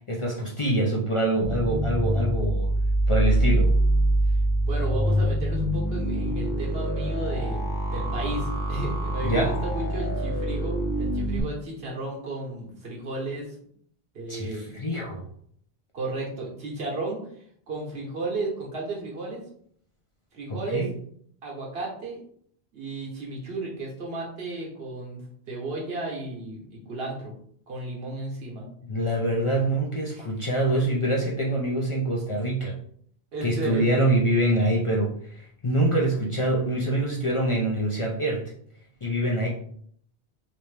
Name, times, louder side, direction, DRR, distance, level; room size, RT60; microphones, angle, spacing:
voice 1, 0.1-2.7 3.1-3.7 9.2-9.5 14.3-15.2 20.7-20.9 28.8-32.7 33.4-38.5 39.0-39.5, right 1 dB, 40° left, -2 dB, 0.5 m, -25 dB
sound 1, 1.4-11.4, right 1 dB, 25° right, 0.5 m, -25 dB
voice 2, 4.6-13.5 14.1-14.8 15.9-17.2 17.7-19.4 20.3-20.8 21.4-22.2 22.7-25.2 25.5-27.3 27.7-28.7 30.1-30.2 33.3-33.9, right 2 dB, 75° right, -2 dB, 1.2 m, -33 dB
3.0 x 2.7 x 3.3 m, 0.63 s
omnidirectional pair, 1.0 m